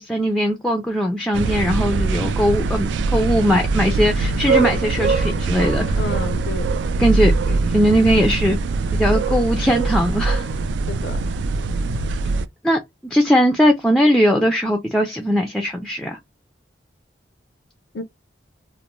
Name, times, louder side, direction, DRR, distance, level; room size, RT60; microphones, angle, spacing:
voice 1, 0.0-6.0 7.0-8.6 8.9-10.5 12.6-16.2, equal, 5° left, 0.3 m, -19 dB
sound 1, 1.3-12.5, right 3 dB, 80° right, 0.3 m, -22 dB
voice 2, 5.9-6.9 10.9-11.2 17.9-18.0, left 2 dB, 80° left, 0.4 m, -30 dB
2.5 x 2.1 x 2.9 m
head